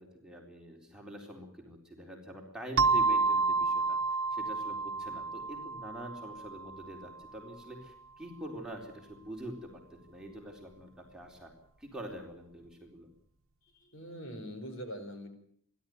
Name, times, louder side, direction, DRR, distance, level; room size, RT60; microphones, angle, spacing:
voice 1, 0.0-4.0 4.3-11.5 11.8-13.1, right 1 dB, 5° right, 0 dB, 4.0 m, -45 dB
sound 1, 2.8-7.2, right 4 dB, 70° right, 1.2 m, -30 dB
voice 2, 13.7-15.3, equal, 60° left, 6 dB, 5.0 m, -43 dB
30.0 x 12.0 x 9.4 m, 0.66 s
head